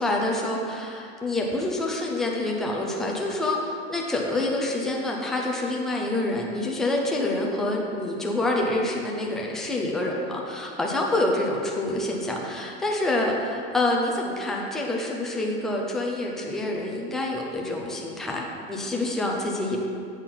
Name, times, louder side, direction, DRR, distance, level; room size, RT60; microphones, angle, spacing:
voice 1, 0.0-19.8, left 2 dB, ahead, -1 dB, 0.4 m, -27 dB
8.1 x 4.3 x 5.7 m, 2.4 s
supercardioid pair, 160°, 30 cm